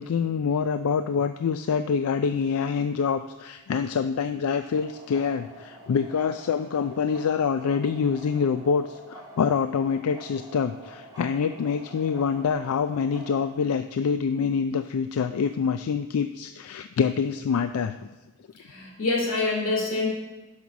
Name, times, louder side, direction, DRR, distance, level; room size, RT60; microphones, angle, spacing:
voice 1, 0.0-18.1, left 6 dB, 85° left, 10 dB, 0.4 m, -26 dB
sound 1, 4.7-13.5, right 1 dB, 15° right, 2.3 m, -47 dB
voice 2, 18.6-20.1, left 3 dB, 60° left, -1 dB, 2.8 m, -26 dB
10.5 x 5.5 x 6.2 m, 1.1 s
head